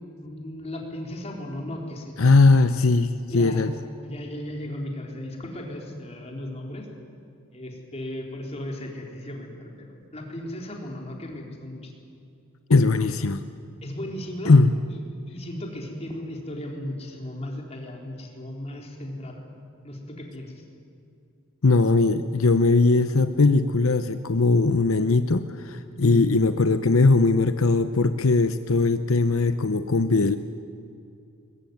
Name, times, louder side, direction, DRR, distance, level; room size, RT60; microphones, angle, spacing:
voice 1, 0.0-2.3 3.3-3.6 4.0-6.9 7.5-11.9 13.8-14.6 14.9-19.4 19.8-20.6 26.0-26.3, left 1 dB, 30° left, 1 dB, 4.0 m, -36 dB
voice 2, 2.2-3.7 12.7-13.4 14.4-14.7 21.6-30.4, left 3 dB, 80° left, 10 dB, 0.8 m, -20 dB
21.5 x 21.5 x 9.4 m, 2.5 s
head